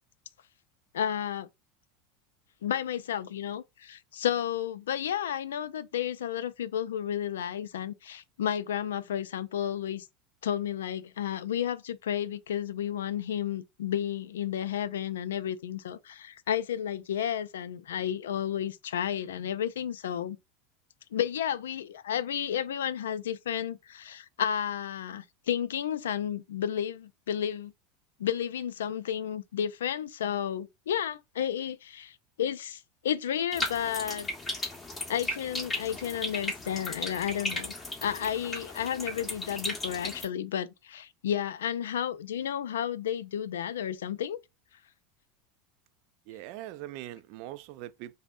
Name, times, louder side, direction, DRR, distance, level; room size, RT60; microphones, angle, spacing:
voice 1, 0.9-1.5 2.6-10.1 10.4-20.4 21.1-27.7 28.2-34.3 35.1-37.7 38.0-44.4, left 9 dB, 90° left, 0.3 m, -32 dB
sound 1, 33.5-40.2, left 2 dB, 15° left, 1.5 m, -36 dB
voice 2, 46.3-48.1, right 14 dB, 60° right, 0.3 m, -41 dB
5.1 x 2.0 x 2.5 m
hypercardioid pair, 100°, 0 cm